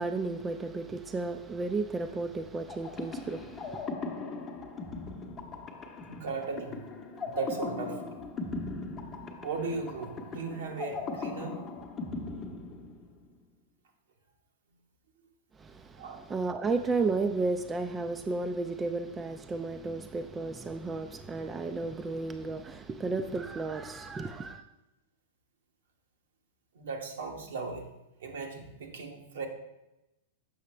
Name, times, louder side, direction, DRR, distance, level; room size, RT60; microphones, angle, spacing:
voice 1, 0.0-3.9 15.6-24.6, right 3 dB, 20° right, 0.4 m, -33 dB
sound 1, 2.7-13.4, left 3 dB, 25° left, 0.8 m, -39 dB
voice 2, 6.1-6.8 7.2-8.1 9.4-11.6 16.0-16.2 26.7-27.9 28.2-29.5, right 4 dB, 75° right, 1.1 m, -37 dB
6.9 x 5.7 x 3.2 m
hypercardioid pair, 110°, 0 cm